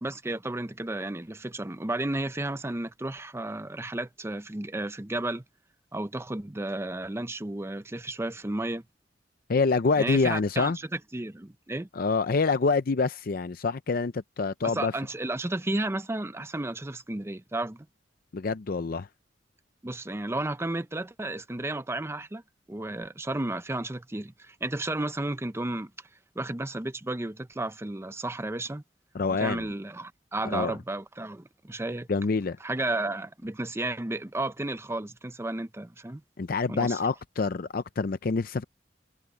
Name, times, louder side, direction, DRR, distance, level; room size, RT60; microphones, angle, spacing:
voice 1, 0.0-5.4 5.9-8.8 10.0-11.9 14.6-17.9 19.8-22.4 22.7-25.9 26.4-28.8 29.3-32.1 32.6-36.2 36.7-37.0, right 2 dB, 15° right, 0.6 m, -33 dB
voice 2, 9.5-10.8 11.9-14.9 18.3-19.1 29.1-29.7 30.4-30.7 32.1-32.6 36.4-38.6, left 4 dB, 55° left, 0.5 m, -26 dB
head